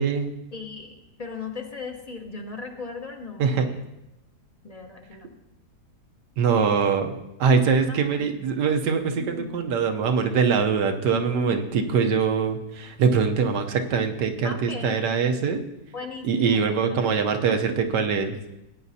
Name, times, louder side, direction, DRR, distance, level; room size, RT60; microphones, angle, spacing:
voice 1, 0.0-0.3 3.4-3.7 6.4-7.1 7.4-15.6 16.2-18.3, right 5 dB, 90° right, 5 dB, 1.5 m, -23 dB
voice 2, 0.5-3.8 4.6-5.4 7.9-8.3 9.2-9.6 14.4-15.0 15.9-17.3, left 4 dB, 30° left, 4 dB, 0.7 m, -38 dB
17.0 x 9.3 x 2.8 m, 0.91 s
omnidirectional pair, 1.8 m